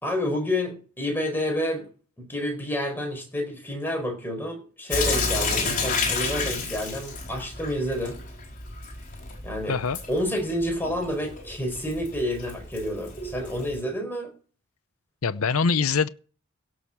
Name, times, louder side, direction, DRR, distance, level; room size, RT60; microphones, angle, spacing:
voice 1, 0.0-1.9 2.2-8.2 9.4-9.8 10.1-14.3, left 1 dB, 10° left, 4.9 m, -29 dB
Sink (filling or washing) / Drip, 4.9-13.8, left 4 dB, 40° left, 4.9 m, -31 dB
voice 2, 9.7-10.0 15.2-16.1, left 5 dB, 85° left, 0.7 m, -23 dB
17.0 x 6.4 x 6.1 m
head